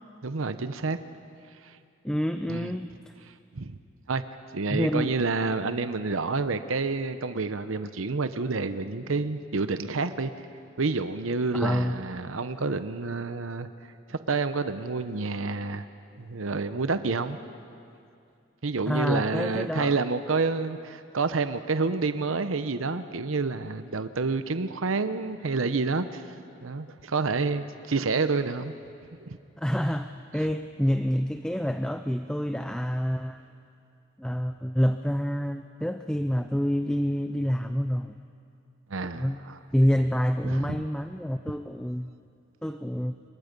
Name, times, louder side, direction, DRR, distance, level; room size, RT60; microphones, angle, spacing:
voice 1, 0.2-1.0 2.5-2.7 3.5-3.8 4.1-4.2 4.5-10.3 10.8-13.7 14.1-15.8 16.2-17.4 18.6-26.2 26.6-28.8 29.2-29.4 30.3-30.4 38.9-39.6 40.4-40.8, right 4 dB, 90° right, 11 dB, 0.8 m, -28 dB
voice 2, 2.0-3.0 4.7-5.1 11.5-12.0 18.9-20.0 29.6-33.4 34.2-38.2 39.1-39.4 39.7-42.1 42.6-43.1, equal, 5° left, 8 dB, 0.4 m, -27 dB
28.5 x 23.0 x 5.3 m, 2.5 s
head